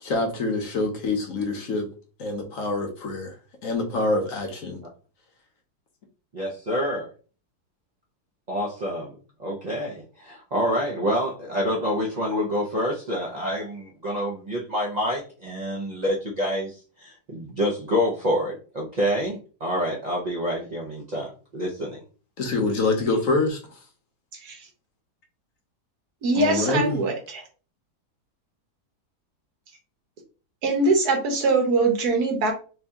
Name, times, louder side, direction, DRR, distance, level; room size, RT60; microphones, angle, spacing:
voice 1, 0.0-1.9 2.2-3.4 3.6-4.8 22.4-23.8 26.3-27.0, left 3 dB, 60° left, 3 dB, 1.1 m, -26 dB
voice 2, 6.3-7.1 8.5-22.0, equal, 50° right, -2 dB, 0.5 m, -27 dB
voice 3, 26.2-27.4 30.6-32.5, right 3 dB, 70° right, 3 dB, 1.5 m, -22 dB
3.4 x 2.7 x 3.5 m, 0.37 s
omnidirectional pair, 1.7 m